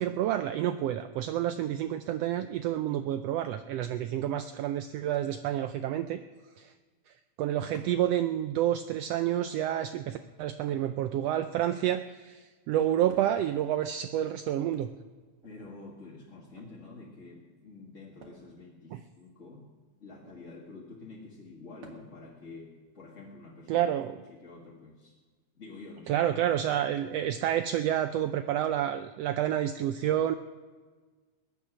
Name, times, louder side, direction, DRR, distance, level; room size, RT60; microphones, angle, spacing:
voice 1, 0.0-6.2 6.6-6.7 7.4-14.9 18.9-19.0 23.7-24.2 26.1-30.3, right 11 dB, 85° right, 10 dB, 1.4 m, -29 dB
sound 1, 7.7-8.1 9.1-9.6 10.7-11.8 13.1-13.5 14.6-15.7 16.4-16.7 18.2-18.5 20.1-20.4 21.8-22.2 23.7-23.8 25.0-25.1, right 4 dB, 50° right, 2.3 m, -53 dB
voice 2, 15.4-19.7 20.0-23.8 24.1-25.2 25.5-26.2, left 3 dB, 30° left, -4 dB, 1.6 m, -48 dB
21.0 x 9.4 x 6.1 m, 1.4 s
omnidirectional pair, 3.5 m